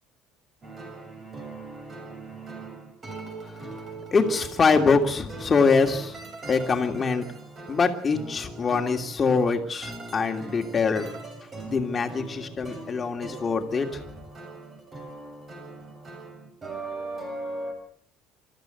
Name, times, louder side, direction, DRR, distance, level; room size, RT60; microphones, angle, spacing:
sound 1, 0.6-17.7, right 2 dB, 30° right, 6.5 m, -40 dB
voice 1, 4.1-6.2 6.5-7.2 7.7-11.1 11.6-14.0, left 4 dB, 25° left, 4 dB, 2.8 m, -24 dB
26.0 x 14.0 x 8.0 m, 0.63 s
cardioid pair, 135°, 0 cm